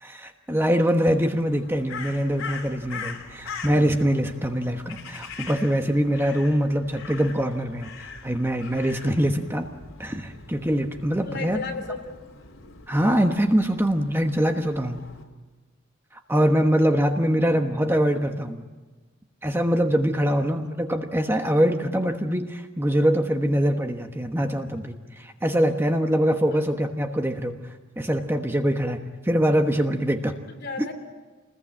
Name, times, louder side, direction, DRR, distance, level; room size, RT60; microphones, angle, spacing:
voice 1, 0.0-9.7 10.0-11.6 12.9-15.0 16.3-18.6 19.4-27.6 28.0-30.3, equal, 10° right, 5 dB, 1.2 m, -23 dB
Crow, 1.5-15.2, left 5 dB, 80° left, 3.2 m, -42 dB
voice 2, 11.2-12.2 17.0-17.4 26.5-26.6 30.5-30.9, left 3 dB, 55° left, 4 dB, 3.4 m, -35 dB
27.5 x 21.0 x 8.8 m, 1.2 s
head